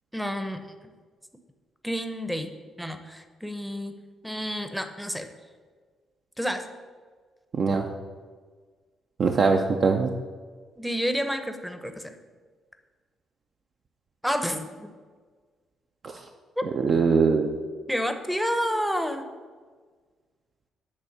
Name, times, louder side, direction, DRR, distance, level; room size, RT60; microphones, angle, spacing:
voice 1, 0.1-0.6 1.8-2.5 2.8-3.9 4.2-5.3 6.4-6.6 10.8-12.1 14.2-14.9 16.6-16.7 17.9-19.3, equal, ahead, 7 dB, 0.7 m, -29 dB
voice 2, 7.5-7.9 9.2-10.1 16.0-16.2 16.6-17.5, right 5 dB, 50° right, 3 dB, 0.5 m, -22 dB
8.4 x 3.5 x 6.6 m, 1.5 s
cardioid pair, 105°, 0 cm